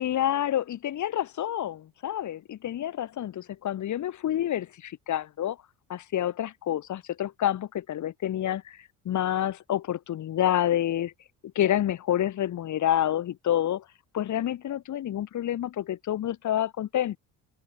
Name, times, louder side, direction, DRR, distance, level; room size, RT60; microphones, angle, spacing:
voice 1, 0.0-5.6 5.9-11.1 11.5-13.8 14.1-17.2, left 11 dB, 45° left, 1.0 m, -28 dB
supercardioid pair, 70°, 40 cm